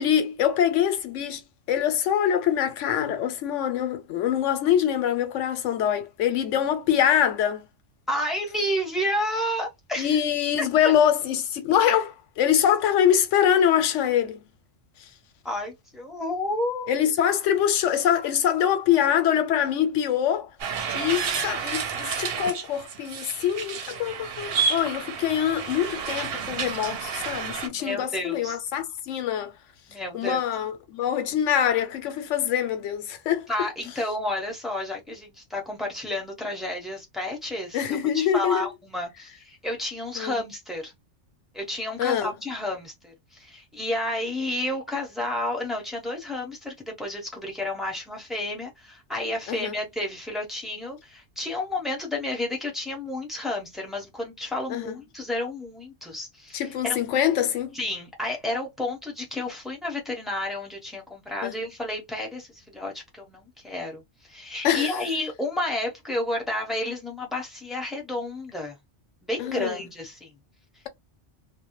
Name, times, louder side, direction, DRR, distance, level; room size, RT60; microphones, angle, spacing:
voice 1, 0.0-1.4 1.7-7.7 10.0-14.4 16.9-20.5 20.9-29.5 30.1-33.7 37.7-38.7 40.2-40.4 42.0-42.3 49.5-49.7 54.7-54.9 56.5-57.8 61.4-61.6 64.6-65.0 69.4-69.8, left 9 dB, 85° left, 0.9 m, -24 dB
voice 2, 8.1-10.2 15.4-16.9 27.7-28.6 29.9-30.4 33.5-40.9 41.5-57.0 57.7-64.0 64.3-68.8 69.2-70.3, left 1 dB, ahead, 0.7 m, -31 dB
sound 1, 20.6-27.7, right 6 dB, 60° right, 0.7 m, -30 dB
2.2 x 2.1 x 2.9 m
omnidirectional pair, 1.2 m